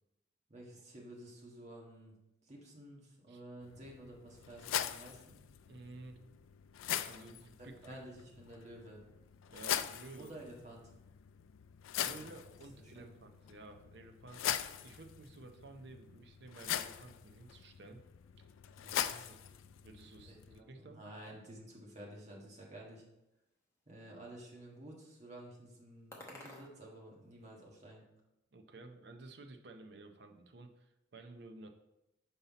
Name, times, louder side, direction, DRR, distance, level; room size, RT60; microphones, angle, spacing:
voice 1, 0.5-2.1 2.4-5.4 7.6-9.0 10.2-10.9 12.0-12.3 12.9-13.1 18.8-19.1 20.2-23.0 23.9-28.0, right 1 dB, 35° right, -2 dB, 1.4 m, -52 dB
sound 1, 3.6-20.6, left 10 dB, 85° left, 0.3 m, -42 dB
voice 2, 5.7-6.2 7.1-8.0 9.5-10.3 12.0-14.4 14.8-18.0 18.9-21.0 28.5-31.7, right 2 dB, 55° right, 5 dB, 0.7 m, -53 dB
sound 2, 20.5-27.7, left 1 dB, 15° left, 1.0 m, -60 dB
5.6 x 5.5 x 4.0 m, 0.91 s
head